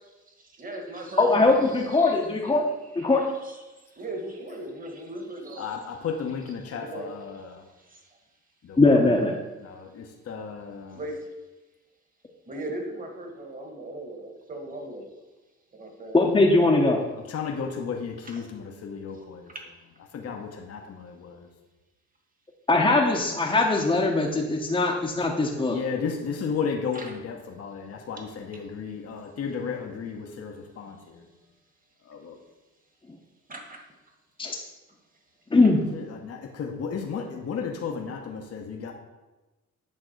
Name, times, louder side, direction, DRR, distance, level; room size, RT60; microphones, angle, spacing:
voice 1, 0.4-2.2 3.0-3.6 3.9-5.8 6.7-7.4 7.9-8.0 10.9-11.2 12.5-15.0 15.7-16.3 18.2-18.5 19.1-19.2 26.9-27.2 27.7-27.8 28.6-28.7 33.5-33.8, right 1 dB, 30° right, 3 dB, 1.7 m, -39 dB
voice 2, 1.2-2.6 2.9-3.2 8.8-9.3 16.1-17.0 22.7-25.8 34.4-34.5 35.5-35.8, left 2 dB, 15° left, -2 dB, 1.0 m, -21 dB
voice 3, 5.6-7.6 8.6-9.1 9.6-11.0 17.2-19.5 20.1-21.5 25.7-31.3 32.0-32.4 35.9-38.9, left 6 dB, 55° left, 3 dB, 1.0 m, -34 dB
8.6 x 3.6 x 6.5 m, 1.1 s
cardioid pair, 90°, 30 cm